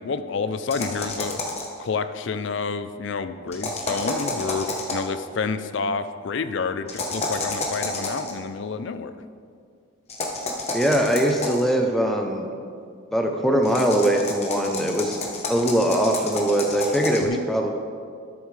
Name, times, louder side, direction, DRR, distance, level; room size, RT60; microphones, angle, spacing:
voice 1, 0.0-1.4 1.8-9.2 17.2-17.4, left 4 dB, 55° left, 10 dB, 0.4 m, -29 dB
sound 1, 0.7-1.8 3.5-5.1 6.9-8.3 10.1-11.7 13.6-17.3, left 2 dB, 30° left, 0.9 m, -30 dB
voice 2, 10.7-12.5 13.1-15.2 15.5-17.8, right 1 dB, ahead, 2 dB, 0.5 m, -22 dB
12.5 x 7.0 x 3.2 m, 2.2 s
head